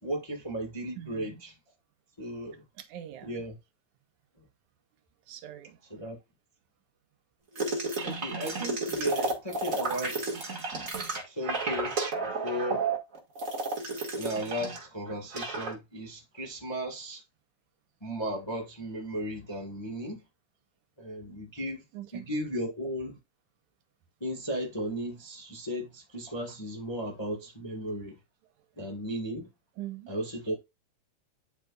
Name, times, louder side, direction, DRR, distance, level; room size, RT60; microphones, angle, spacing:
voice 1, 0.0-1.6 2.2-2.6 3.2-3.6 4.4-4.5 5.8-6.2 8.0-10.4 11.2-12.9 14.1-17.2 18.0-20.2 21.0-21.8 22.1-23.2 24.2-28.2 28.8-29.5 30.1-30.6, equal, 15° left, 0.9 m, -35 dB
voice 2, 1.0-1.3 2.8-3.3 5.3-5.8 22.0-22.3 29.8-30.1, right 12 dB, 85° right, 2.3 m, -42 dB
sound 1, 7.6-14.8 15.1-15.7, right 3 dB, 30° right, 1.8 m, -32 dB
11.5 x 4.3 x 2.4 m
omnidirectional pair, 3.4 m